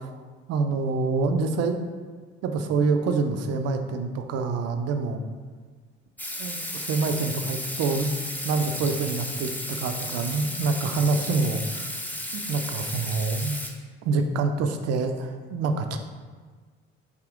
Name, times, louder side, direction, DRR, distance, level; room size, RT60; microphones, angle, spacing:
voice 1, 0.5-1.8 2.4-5.2 6.4-8.1 8.4-9.5 9.8-11.9 12.3-13.6 14.0-16.0, right 4 dB, 55° right, 6 dB, 0.5 m, -26 dB
Water tap faucet / Sink (filling or washing), 6.2-13.7, left 1 dB, 5° left, 0.6 m, -34 dB
4.9 x 2.7 x 3.7 m, 1.5 s
hypercardioid pair, 50°, 31 cm